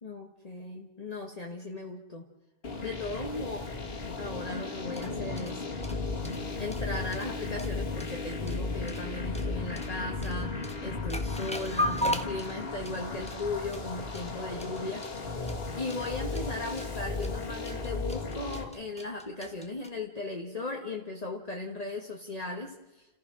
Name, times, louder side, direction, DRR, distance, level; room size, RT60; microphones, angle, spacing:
voice 1, 0.0-2.3 2.8-3.6 4.2-5.6 6.6-15.1 15.8-23.1, left 2 dB, 35° left, 1 dB, 1.6 m, -37 dB
sound 1, 2.6-18.6, left 3 dB, 65° left, 2.7 m, -35 dB
sound 2, 4.9-19.9, left 1 dB, 5° left, 1.5 m, -38 dB
30.0 x 15.0 x 6.3 m, 1.1 s
omnidirectional pair, 1.1 m